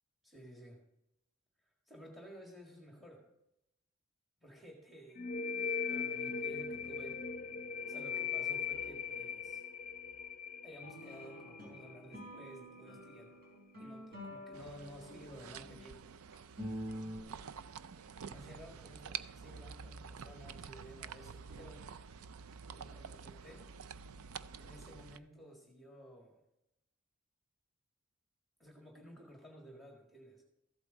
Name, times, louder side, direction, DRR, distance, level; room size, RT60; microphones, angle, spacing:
voice 1, 0.2-0.8 1.6-3.3 4.4-5.2 5.6-7.2 7.9-9.6 10.6-13.4 13.8-16.1 18.2-21.9 22.7-23.7 24.6-26.4 28.6-30.4, equal, ahead, -1 dB, 1.7 m, -54 dB
sound 1, 5.2-12.6, left 6 dB, 40° left, 0.6 m, -39 dB
sound 2, 10.8-15.8 16.3-17.2, equal, 50° right, 4.6 m, -47 dB
sound 3, 14.5-25.2, right 7 dB, 75° right, 0.5 m, -48 dB
14.5 x 8.1 x 4.0 m, 0.85 s
head